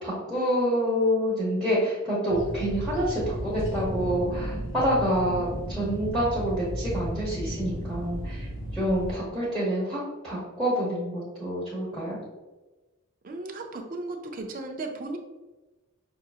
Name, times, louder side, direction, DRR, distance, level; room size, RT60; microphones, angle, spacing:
voice 1, 0.0-12.2, equal, 5° left, -10 dB, 1.0 m, -27 dB
sound 1, 2.3-9.2, equal, 60° left, 1.1 m, -34 dB
voice 2, 13.2-15.2, right 2 dB, 40° right, 4 dB, 0.5 m, -35 dB
5.7 x 2.8 x 2.4 m, 1.2 s
head